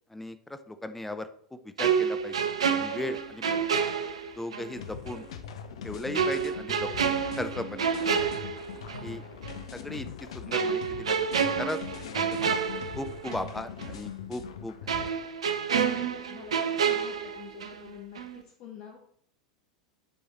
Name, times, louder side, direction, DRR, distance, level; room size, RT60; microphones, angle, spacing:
voice 1, 0.1-1.3 1.8-2.3 2.7-3.6 4.4-5.2 5.8-8.1 9.0-9.2 9.7-10.1 10.3-11.8 12.3-12.6 13.0-15.1, left 1 dB, 5° left, 10 dB, 0.6 m, -37 dB
sound 1, 1.8-4.7 5.1-5.2 6.1-9.1 9.4-9.6 10.5-13.5 13.8-13.9 14.9-17.9 18.2-18.4, right 6 dB, 70° right, 0.7 m, -29 dB
sound 2, 4.8-15.1, left 7 dB, 65° left, 0.7 m, -41 dB
voice 2, 15.9-19.0, left 7 dB, 45° left, 0 dB, 1.2 m, -47 dB
9.1 x 4.8 x 4.2 m, 0.63 s
figure-of-eight pair, 85°, 3 cm